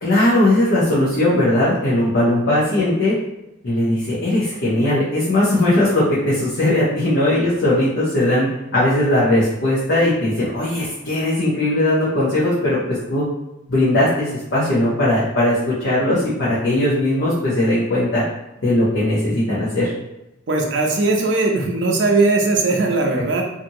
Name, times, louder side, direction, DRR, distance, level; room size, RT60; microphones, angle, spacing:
voice 1, 0.0-3.1 3.6-12.8 13.1-13.2 13.7-15.5 15.8-18.2 18.6-19.9, left 1 dB, 70° left, -9 dB, 0.8 m, -18 dB
voice 2, 20.5-23.4, right 3 dB, 65° right, 0 dB, 0.5 m, -19 dB
2.7 x 2.5 x 2.7 m, 0.94 s
head